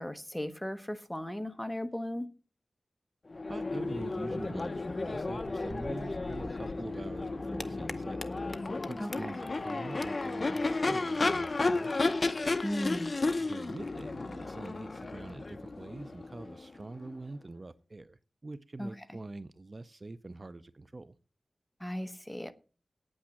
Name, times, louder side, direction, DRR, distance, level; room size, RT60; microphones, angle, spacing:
voice 1, 0.0-2.3 9.0-9.4 12.6-13.1 18.8-19.2 21.8-22.5, equal, 5° left, 1.0 m, -36 dB
Crowd / Race car auto racing / Accelerating revving vroom, 3.3-17.1, left 3 dB, 40° left, 0.7 m, -33 dB
voice 2, 3.5-8.2 8.9-12.1 13.4-21.1, right 2 dB, 35° right, 0.5 m, -45 dB
9.3 x 8.7 x 7.6 m
wide cardioid pair, 115°, 0 cm